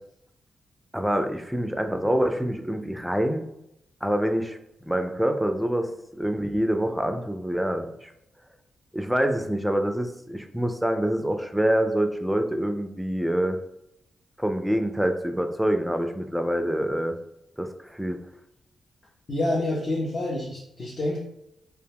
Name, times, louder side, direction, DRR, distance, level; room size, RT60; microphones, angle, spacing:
voice 1, 0.9-3.5 4.0-4.6 4.9-8.1 8.9-13.6 14.4-17.2 17.6-18.2, equal, 5° right, 6 dB, 0.4 m, -26 dB
voice 2, 19.3-21.2, left 1 dB, 50° left, -4 dB, 0.5 m, -27 dB
2.1 x 2.1 x 3.3 m, 0.81 s
supercardioid pair, 45°, 0 cm